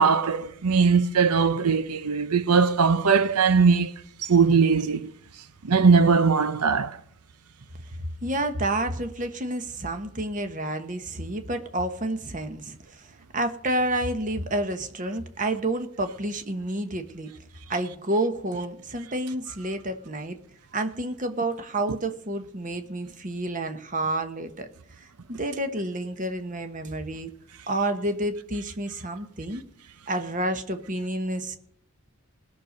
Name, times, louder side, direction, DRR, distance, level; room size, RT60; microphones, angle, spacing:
voice 1, 0.0-3.9 4.2-5.1 5.6-7.0, right 5 dB, 90° right, 0.7 m, -20 dB
voice 2, 8.2-17.3 17.7-20.4 20.7-24.7 25.0-27.3 27.7-29.6 30.1-31.6, right 1 dB, 35° right, 1.2 m, -29 dB
20.0 x 6.7 x 5.3 m
head